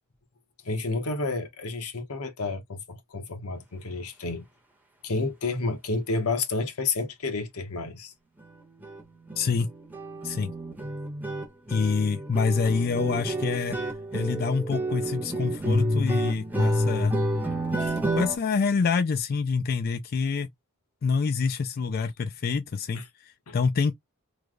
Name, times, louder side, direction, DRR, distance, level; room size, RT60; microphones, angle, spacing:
voice 1, 0.6-4.5 5.0-8.1 17.8-18.0 22.9-23.0 23.5-23.6, left 3 dB, 85° left, 0.9 m, -30 dB
sound 1, 8.4-8.5 8.8-9.0 9.3-18.4, equal, 10° right, 0.8 m, -29 dB
voice 2, 9.4-9.7 10.2-10.5 11.7-13.8 14.1-17.1 18.2-20.5 21.0-23.9, left 5 dB, 45° left, 0.3 m, -26 dB
3.2 x 2.0 x 3.6 m
head